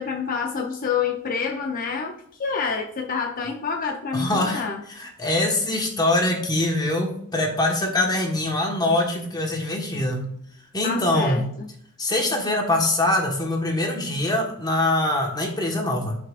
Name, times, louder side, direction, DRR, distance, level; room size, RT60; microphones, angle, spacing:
voice 1, 0.0-4.8 10.8-11.7, left 5 dB, 40° left, 2 dB, 0.7 m, -28 dB
voice 2, 4.1-4.6 4.9-10.3 10.7-11.4 12.0-16.2, left 1 dB, 20° left, 1 dB, 1.5 m, -23 dB
11.5 x 5.9 x 2.5 m, 0.67 s
head